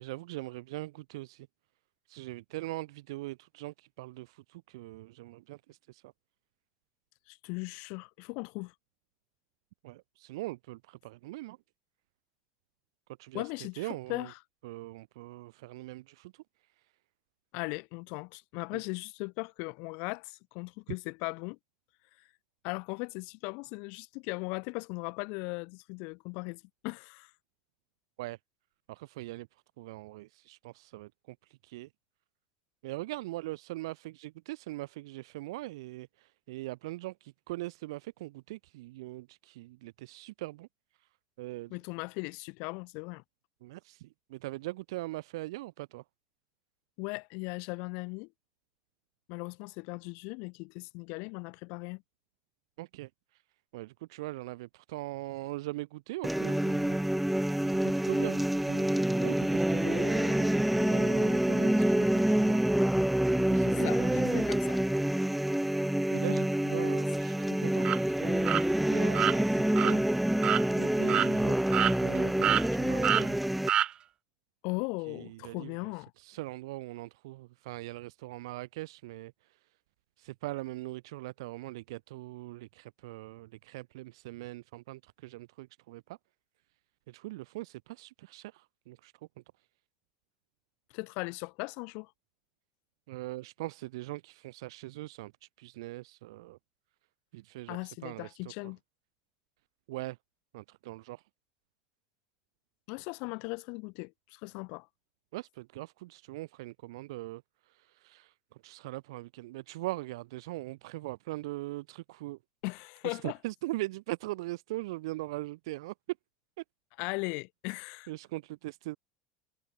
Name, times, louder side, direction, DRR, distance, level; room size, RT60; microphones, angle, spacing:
voice 1, 0.0-1.5 2.1-6.1 9.8-11.6 13.2-13.4 13.8-14.3 14.6-16.4 18.7-18.8 28.2-28.4 28.9-29.5 29.8-31.4 31.6-31.9 32.8-40.7 41.4-41.8 43.6-46.0 52.8-53.1 53.7-57.0 57.7-62.6 63.5-64.5 66.1-70.0 70.8-73.4 75.1-75.8 76.2-79.3 80.2-86.2 87.1-89.1 93.1-96.6 97.3-97.8 98.0-98.5 99.9-100.2 100.5-101.2 105.3-107.4 107.7-108.3 108.6-112.4 113.0-115.9 118.1-119.0, right 19 dB, 85° right, 4.6 m, -41 dB
voice 2, 7.3-8.7 13.3-14.4 17.5-21.6 22.2-22.3 22.6-27.3 41.7-43.2 47.0-48.3 49.3-52.0 63.7-64.8 74.6-76.1 90.9-92.1 97.7-98.8 102.9-104.9 112.6-113.4 117.0-118.1, left 33 dB, 65° left, 4.8 m, -38 dB
sound 1, 56.2-73.7, right 1 dB, 5° right, 1.3 m, -27 dB
sound 2, 67.8-68.0 68.5-68.6 69.1-69.4 69.8-69.9 70.4-70.6 71.1-71.3 71.7-72.2 72.4-72.7 73.0-73.3 73.7-73.9, right 10 dB, 35° right, 1.4 m, -26 dB
supercardioid pair, 135°, 3 cm